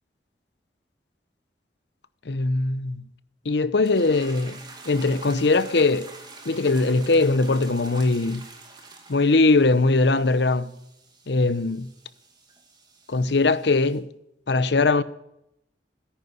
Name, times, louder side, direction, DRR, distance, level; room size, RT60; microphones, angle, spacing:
voice 1, 2.3-3.0 3.4-4.6 4.8-6.1 6.4-8.4 9.1-10.7 11.3-11.9 13.1-14.1 14.5-15.0, left 3 dB, 80° left, 0.8 m, -21 dB
sound 1, 3.8-14.0, right 3 dB, 25° right, 2.4 m, -46 dB
14.0 x 10.5 x 9.5 m
head